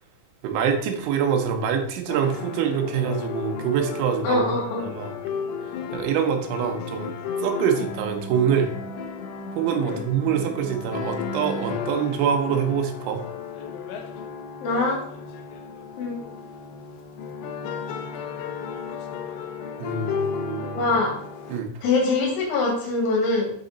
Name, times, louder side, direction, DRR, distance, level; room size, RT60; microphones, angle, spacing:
voice 1, 0.4-4.4 5.0-5.1 5.9-7.1 7.4-8.7 9.5-13.2 19.8-20.8 21.5-21.7, right 7 dB, 80° right, 4 dB, 3.3 m, -25 dB
sound 1, 2.1-21.6, left 6 dB, 85° left, 2.3 m, -34 dB
voice 2, 4.2-5.0 9.9-10.0 14.6-15.0 16.0-16.2 20.7-21.2 21.8-23.5, left 3 dB, 65° left, -1 dB, 3.7 m, -23 dB
7.5 x 4.1 x 3.8 m, 0.62 s
omnidirectional pair, 5.6 m